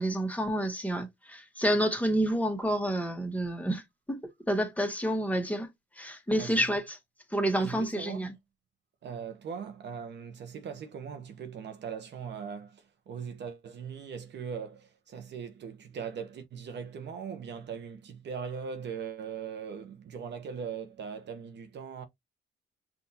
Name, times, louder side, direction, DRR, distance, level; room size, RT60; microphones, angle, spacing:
voice 1, 0.0-3.8 4.1-4.2 4.5-5.7 6.0-7.0 7.3-8.3, right 1 dB, 5° left, 1.4 m, -29 dB
voice 2, 6.3-6.8 7.6-8.4 9.0-22.0, right 6 dB, 60° right, 1.0 m, -40 dB
5.8 x 2.7 x 2.8 m
cardioid pair, 90°, 20 cm